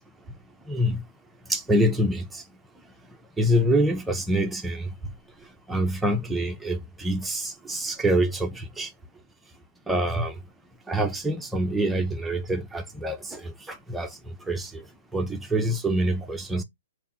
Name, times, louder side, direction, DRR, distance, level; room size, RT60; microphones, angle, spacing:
voice 1, 0.7-1.0 1.5-2.4 3.4-4.9 5.7-8.9 9.9-10.3 10.9-14.1 14.5-14.8 15.1-16.6, right 1 dB, 5° right, 0.7 m, -26 dB
3.4 x 2.6 x 3.9 m
hypercardioid pair, 135°, 0 cm